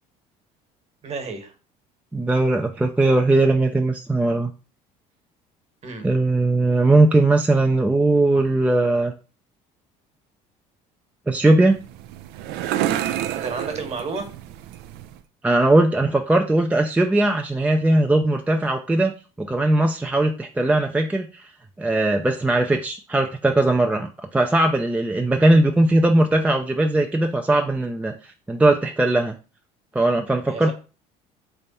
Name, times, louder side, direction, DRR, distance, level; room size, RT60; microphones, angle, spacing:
voice 1, 1.0-1.5 5.8-6.1 13.3-14.3 30.5-30.7, right 4 dB, 40° right, 6 dB, 1.3 m, -31 dB
voice 2, 2.1-4.5 6.0-9.1 11.3-11.8 15.4-19.1 19.4-21.3 21.8-28.1 28.5-29.4 29.9-30.7, right 2 dB, 10° right, 4 dB, 0.4 m, -19 dB
sound 1, 11.6-15.2, right 11 dB, 75° right, 0.4 m, -29 dB
3.4 x 3.3 x 4.1 m, 0.34 s
supercardioid pair, 90°, 17 cm